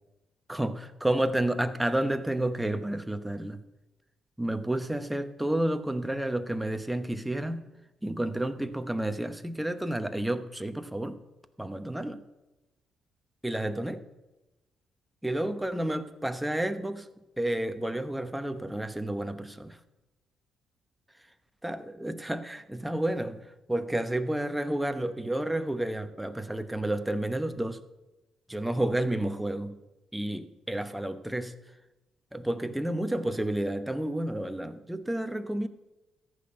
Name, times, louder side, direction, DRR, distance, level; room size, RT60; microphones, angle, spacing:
voice 1, 0.5-3.6 4.4-7.7 8.0-11.2 11.6-12.2 13.4-14.0 15.2-17.1 17.4-19.8 21.6-27.8 28.5-29.8 30.1-31.5 32.3-35.7, right 1 dB, 5° right, 0.9 m, -30 dB
14.0 x 6.0 x 8.9 m
cardioid pair, 90°, 0 cm